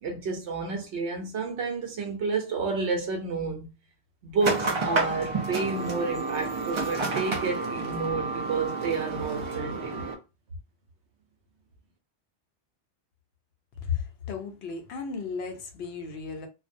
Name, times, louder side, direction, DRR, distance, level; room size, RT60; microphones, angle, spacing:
voice 1, 0.0-3.7 4.2-10.1, right 4 dB, 85° right, 1.0 m, -30 dB
sound 1, 4.4-10.1, right 3 dB, 40° right, 0.4 m, -30 dB
voice 2, 13.8-16.5, left 6 dB, 70° left, 0.8 m, -34 dB
2.4 x 2.1 x 2.5 m
omnidirectional pair, 1.1 m